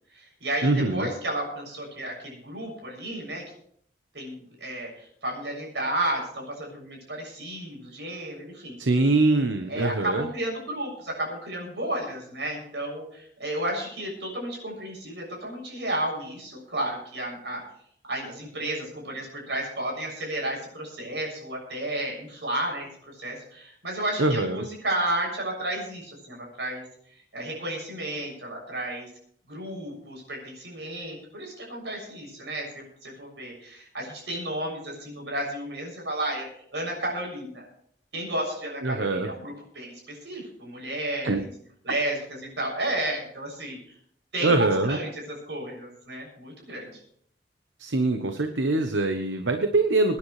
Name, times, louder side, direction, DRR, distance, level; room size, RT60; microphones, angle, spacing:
voice 1, 0.1-3.4 4.1-8.8 9.7-17.6 18.1-29.1 29.5-37.7 38.1-41.5 41.8-44.0 44.3-47.0, right 1 dB, 70° right, -1 dB, 7.0 m, -32 dB
voice 2, 0.6-1.1 8.8-10.3 24.2-24.6 38.8-39.3 41.2-41.4 44.4-45.0 47.8-50.2, right 2 dB, 85° right, 7 dB, 0.9 m, -23 dB
25.0 x 10.0 x 3.2 m, 0.65 s
head